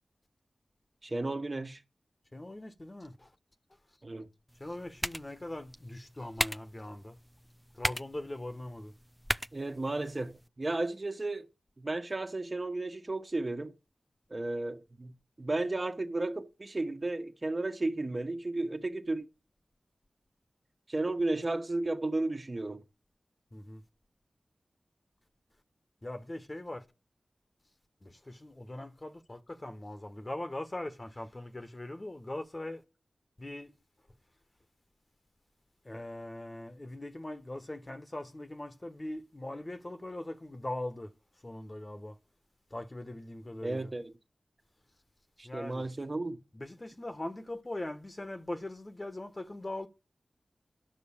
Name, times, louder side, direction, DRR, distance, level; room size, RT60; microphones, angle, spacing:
voice 1, 1.0-1.8 4.0-4.3 9.5-11.5 11.8-13.7 14.3-15.1 15.4-19.2 20.9-22.8 43.6-44.1 45.4-46.4, right 2 dB, 45° right, 1.5 m, -33 dB
voice 2, 2.3-3.3 4.6-7.2 7.7-8.9 23.5-23.8 26.0-26.9 28.0-32.8 33.4-33.7 35.8-41.1 41.4-42.2 42.7-43.9 45.4-45.9 46.5-49.9, left 1 dB, 35° left, 1.3 m, -41 dB
sound 1, 4.5-10.5, equal, ahead, 0.5 m, -38 dB
9.9 x 6.2 x 7.2 m
cardioid pair, 40°, 0 cm